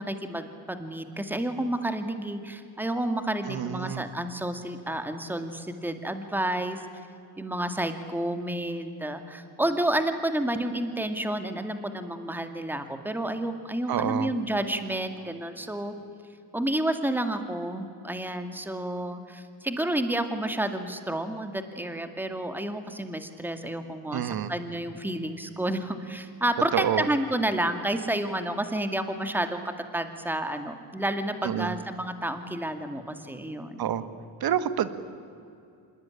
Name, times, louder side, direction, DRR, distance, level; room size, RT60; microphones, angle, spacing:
voice 1, 0.0-6.8 7.4-15.9 16.5-29.6 29.9-33.8, right 1 dB, 5° right, 7 dB, 2.2 m, -30 dB
voice 2, 3.5-4.0 13.9-14.3 24.1-24.5 26.7-27.1 31.4-31.7 33.8-34.0 34.4-34.9, right 10 dB, 55° right, 12 dB, 1.7 m, -28 dB
26.0 x 20.5 x 10.0 m, 2.6 s
cardioid pair, 95°, 45 cm